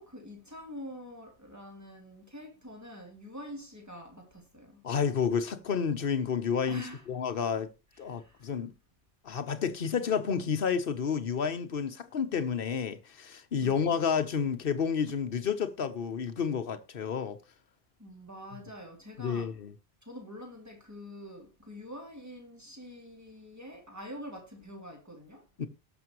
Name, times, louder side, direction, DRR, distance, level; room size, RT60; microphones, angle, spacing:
voice 1, 0.0-4.9 6.7-7.1 7.9-8.6 13.6-14.0 18.0-19.6 20.0-25.5, equal, 15° right, 3.0 m, -46 dB
voice 2, 4.8-7.7 8.0-8.7 9.2-17.4 19.2-19.7 25.6-25.7, left 6 dB, 60° left, 1.1 m, -30 dB
18.5 x 6.2 x 3.0 m
omnidirectional pair, 1.1 m